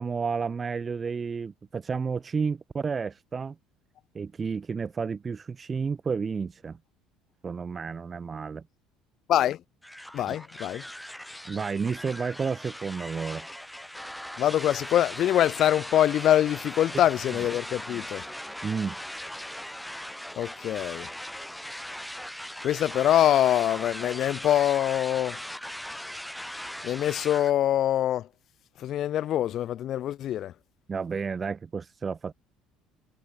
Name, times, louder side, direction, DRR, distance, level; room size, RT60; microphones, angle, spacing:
voice 1, 0.0-3.6 4.1-6.8 7.4-8.6 10.3-10.4 11.5-13.5 18.6-19.0 30.9-32.3, right 5 dB, 25° right, 5.8 m, -31 dB
sound 1, 9.8-27.5, equal, ahead, 3.7 m, -39 dB
voice 2, 10.1-10.8 14.4-18.2 20.4-21.1 22.6-25.4 26.8-28.3 28.8-30.5, left 12 dB, 50° left, 2.3 m, -24 dB
cardioid pair, 125°, 0 cm